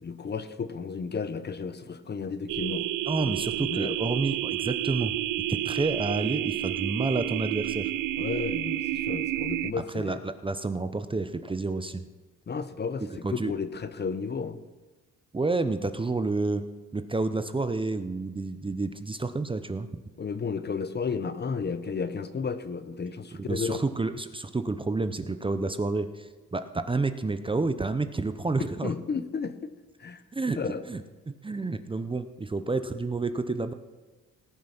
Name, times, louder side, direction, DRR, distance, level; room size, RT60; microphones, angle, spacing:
voice 1, 0.0-2.9 3.3-4.0 8.2-10.2 12.5-14.6 20.2-23.8 28.8-29.7 30.0-30.2 30.6-30.8, left 5 dB, 35° left, 12 dB, 0.9 m, -33 dB
sound 1, 2.5-9.7, right 14 dB, 90° right, 0.6 m, -30 dB
voice 2, 3.1-5.1 5.5-7.9 9.9-12.0 13.2-13.5 15.3-16.6 16.9-19.9 23.5-28.9 30.3-30.6 30.9-31.0 31.3-33.7, right 3 dB, 15° right, 10 dB, 0.7 m, -29 dB
18.5 x 6.2 x 6.0 m, 1.2 s
cardioid pair, 90°, 30 cm